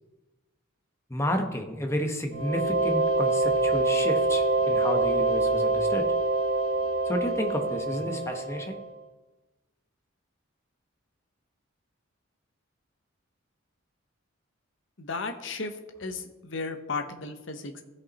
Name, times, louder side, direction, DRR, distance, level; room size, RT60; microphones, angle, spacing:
voice 1, 1.1-6.0 7.1-8.8, equal, 15° left, 4 dB, 0.9 m, -31 dB
sound 1, 2.3-8.9, right 2 dB, 85° right, 1.3 m, -25 dB
voice 2, 15.0-17.8, left 3 dB, 65° left, 7 dB, 0.9 m, -35 dB
15.5 x 5.3 x 4.2 m, 1.1 s
head